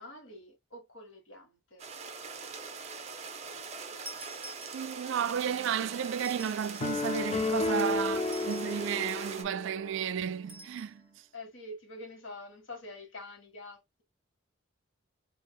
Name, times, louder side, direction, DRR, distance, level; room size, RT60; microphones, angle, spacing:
voice 1, 0.0-1.9 7.6-7.8 11.3-14.0, left 2 dB, 70° left, 1.6 m, -46 dB
sound 1, 1.8-9.4, right 5 dB, 30° right, 0.8 m, -42 dB
sound 2, 4.0-5.2 6.1-7.0 8.2-9.0 10.5-10.9, right 1 dB, 10° right, 1.4 m, -49 dB
voice 2, 4.7-8.2 8.5-11.0, right 8 dB, 65° right, 0.3 m, -33 dB
sound 3, 6.8-10.1, left 3 dB, 30° left, 0.4 m, -32 dB
4.8 x 2.7 x 2.2 m
head